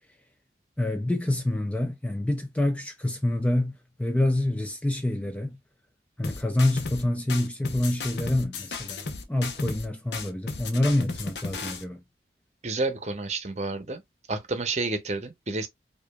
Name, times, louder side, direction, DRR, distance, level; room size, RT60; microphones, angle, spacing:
voice 1, 0.8-3.7 4.0-5.6 6.2-12.0, left 1 dB, 10° left, 0.3 m, -27 dB
sound 1, 6.2-7.0 7.3-9.9 10.1-11.8, left 4 dB, 75° left, 0.8 m, -35 dB
voice 2, 12.6-14.0 14.3-15.7, right 3 dB, 40° right, 0.7 m, -30 dB
5.0 x 2.4 x 2.3 m
head